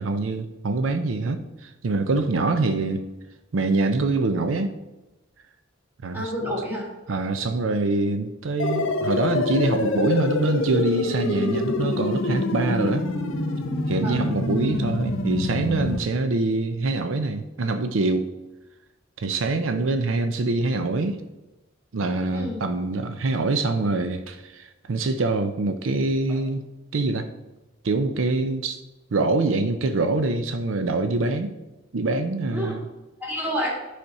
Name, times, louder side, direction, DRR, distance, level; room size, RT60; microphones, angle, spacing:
voice 1, 0.0-3.0 3.5-4.7 6.0-6.3 7.1-13.1 13.9-18.3 19.2-21.2 21.9-26.6 26.9-27.3 27.8-28.8 29.1-31.5 31.9-32.9, right 3 dB, 80° right, 8 dB, 0.5 m, -24 dB
voice 2, 6.1-6.8 14.0-14.2 22.3-22.6 32.5-32.7 33.2-33.7, equal, 10° right, -4 dB, 2.4 m, -28 dB
sound 1, 8.6-16.0, left 2 dB, 85° left, 0.8 m, -26 dB
10.5 x 5.1 x 4.1 m, 1.1 s
head